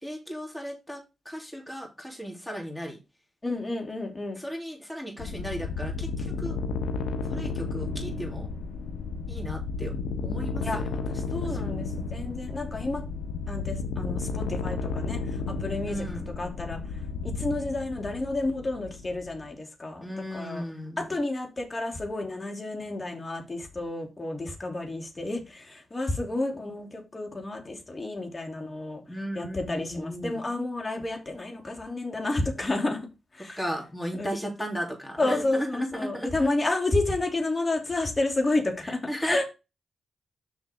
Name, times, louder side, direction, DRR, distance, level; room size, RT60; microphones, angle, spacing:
voice 1, 0.0-3.0 4.4-6.6 7.3-8.5 9.3-9.9 10.2-11.7 15.8-16.3 20.0-21.1 29.1-30.4 33.6-36.5 38.8-39.5, equal, 10° left, 3.4 m, -35 dB
voice 2, 3.4-4.4 10.6-10.8 11.3-13.0 13.5-16.0 16.4-16.8 17.2-20.1 20.3-20.6 21.0-29.0 29.3-33.1 33.3-33.6 34.2-34.3 35.2-39.5, left 2 dB, 35° left, 3.1 m, -30 dB
sound 1, 5.2-19.5, left 4 dB, 85° left, 1.1 m, -33 dB
7.0 x 6.9 x 3.7 m
supercardioid pair, 50°, 0 cm